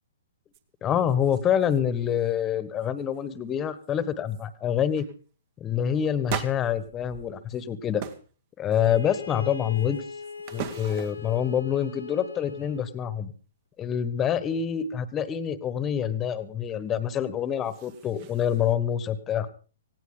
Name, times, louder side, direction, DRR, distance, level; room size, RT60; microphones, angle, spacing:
sound 1, 0.5-0.6 1.0-1.8 2.1-2.4 2.8-3.2 3.8-3.9 4.3-4.5 4.9-5.1 6.3-7.6 8.0-8.3 8.7-9.2 9.7-11.4 17.4-18.7, right 9 dB, 40° right, 1.6 m, -40 dB
voice 1, 0.8-5.1 5.6-8.0 8.6-10.0 10.5-13.3 13.8-19.5, left 9 dB, 20° left, 14 dB, 1.4 m, -26 dB
Bowed string instrument, 8.7-13.0, left 6 dB, 85° left, 1.2 m, -40 dB
18.5 x 17.0 x 3.9 m, 0.37 s
figure-of-eight pair, 125°, 0 cm